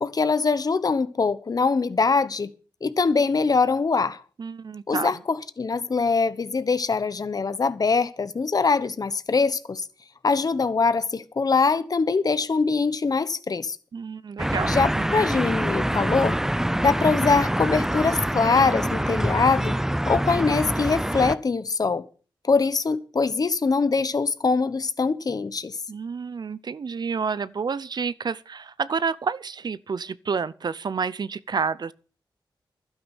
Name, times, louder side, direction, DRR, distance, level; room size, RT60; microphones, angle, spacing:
voice 1, 0.0-2.5 2.8-4.2 4.9-9.9 10.2-13.8 14.7-16.4 16.8-19.8 20.1-22.0 22.4-25.8, left 4 dB, 45° left, 1.1 m, -23 dB
voice 2, 4.4-5.1 13.9-15.1 25.9-31.9, right 5 dB, 55° right, 0.6 m, -29 dB
sound 1, 14.4-21.4, right 1 dB, 5° right, 0.6 m, -25 dB
12.5 x 10.5 x 6.1 m
wide cardioid pair, 95°, 9 cm